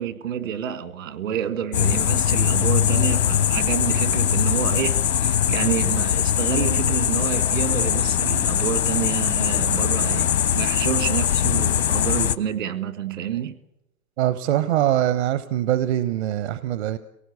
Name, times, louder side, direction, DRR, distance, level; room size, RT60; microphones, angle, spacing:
voice 1, 0.0-13.6, right 9 dB, 70° right, 10 dB, 2.0 m, -28 dB
sound 1, 1.7-12.4, left 9 dB, 80° left, 1.3 m, -21 dB
voice 2, 14.2-17.0, right 12 dB, 50° right, 12 dB, 0.9 m, -23 dB
28.0 x 18.0 x 8.2 m, 0.95 s
hypercardioid pair, 125°, 41 cm